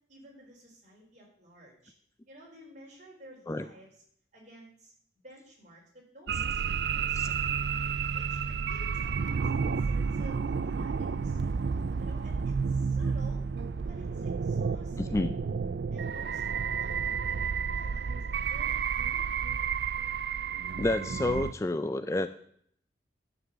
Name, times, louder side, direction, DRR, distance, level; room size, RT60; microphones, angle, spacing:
voice 1, 0.1-1.9 2.3-4.0 4.3-4.9 5.2-7.6 8.1-11.5 12.0-13.5 13.9-15.3 15.9-19.4, equal, 40° right, -2 dB, 3.9 m, -54 dB
sound 1, 6.3-21.5, right 6 dB, 60° right, 0.4 m, -31 dB
voice 2, 15.0-15.3 20.8-22.3, left 2 dB, 15° left, 11 dB, 0.4 m, -29 dB
11.0 x 6.1 x 8.0 m, 0.65 s
head